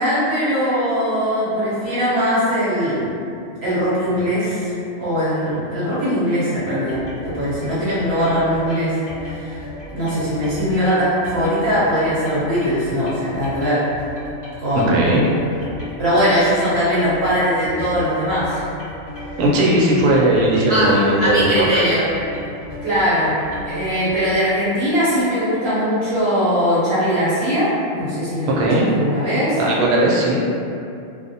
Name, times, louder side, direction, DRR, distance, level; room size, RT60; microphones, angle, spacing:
voice 1, 0.0-3.1 3.6-4.7 5.0-9.0 9.2-9.6 9.9-13.8 14.6-15.1 16.0-18.6 20.7-22.1 22.8-23.4 23.6-27.7 28.0-28.5 28.9-29.6, equal, 55° right, -11 dB, 0.9 m, -20 dB
sound 1, 6.9-24.3, left 1 dB, 50° left, 1.0 m, -35 dB
voice 2, 14.8-15.3 19.4-21.9 28.5-28.9 29.6-30.5, right 1 dB, 90° right, -4 dB, 1.1 m, -17 dB
2.5 x 2.0 x 2.6 m, 2.5 s
omnidirectional pair, 1.5 m